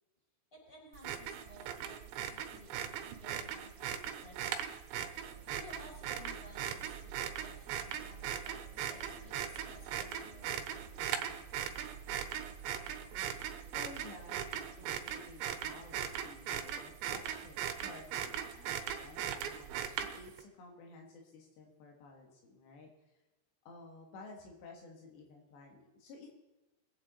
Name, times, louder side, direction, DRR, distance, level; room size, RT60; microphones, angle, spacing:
voice 1, 0.5-4.7 5.4-10.6, left 2 dB, 15° left, -5 dB, 5.9 m, -56 dB
sound 1, 1.0-20.4, right 9 dB, 85° right, 3.2 m, -39 dB
sound 2, 5.0-15.8, right 6 dB, 30° left, 4.8 m, -53 dB
voice 2, 13.7-23.1 23.7-26.3, left 3 dB, 80° left, 1 dB, 3.8 m, -53 dB
22.5 x 8.6 x 4.1 m, 1.1 s
omnidirectional pair, 5.0 m